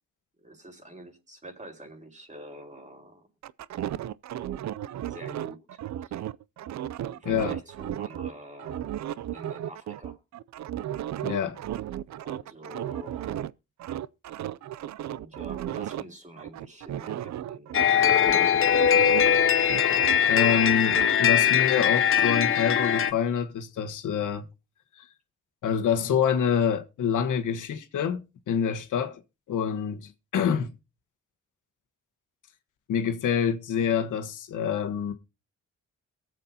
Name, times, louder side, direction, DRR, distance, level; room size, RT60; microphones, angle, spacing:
voice 1, 0.4-3.3 4.9-6.2 7.1-10.2 12.2-13.4 15.1-18.2 18.6-18.8, right 1 dB, 25° right, 4.7 m, -47 dB
sound 1, 3.4-8.3 8.6-13.5 13.8-16.0 16.4-19.4 19.6-21.2, right 11 dB, 65° right, 0.5 m, -35 dB
voice 2, 7.2-7.6 11.2-11.6 20.3-24.5 25.0-25.1 25.6-29.2 29.5-30.7 32.9-35.1, left 7 dB, 85° left, 1.4 m, -26 dB
sound 2, 17.7-23.1, left 8 dB, 45° left, 0.7 m, -21 dB
23.0 x 7.6 x 2.8 m
cardioid pair, 75°, 30 cm